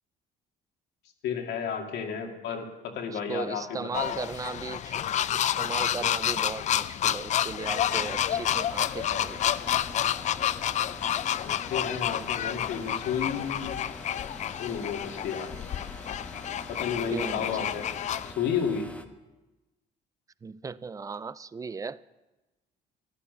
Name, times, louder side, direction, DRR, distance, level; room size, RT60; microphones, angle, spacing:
voice 1, 1.2-4.3 11.4-13.8 14.6-15.5 16.7-18.0 18.3-18.9, left 7 dB, 80° left, 2.1 m, -32 dB
voice 2, 3.1-5.0 5.3-9.4 17.1-17.5 20.4-22.0, right 5 dB, 20° right, 0.4 m, -37 dB
sound 1, 3.9-18.3, left 10 dB, 45° left, 0.4 m, -29 dB
sound 2, 7.6-19.1, left 1 dB, 10° left, 1.1 m, -45 dB
14.5 x 11.5 x 6.6 m
cardioid pair, 110°, 17 cm